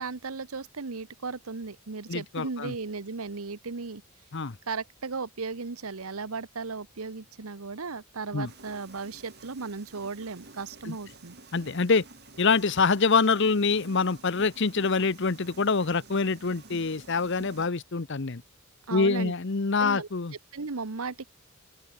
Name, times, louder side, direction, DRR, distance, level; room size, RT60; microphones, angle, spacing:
voice 1, 0.0-4.0 4.7-11.4 18.9-19.3 19.8-20.1 20.5-21.2, right 4 dB, 80° right, 1.0 m, -36 dB
voice 2, 2.1-2.7 4.3-4.6 8.3-8.5 10.9-11.0 11.5-12.0 12.4-18.4 18.9-20.3, left 4 dB, 55° left, 0.8 m, -25 dB
sound 1, 8.4-17.7, right 3 dB, 50° right, 5.0 m, -51 dB
open air
head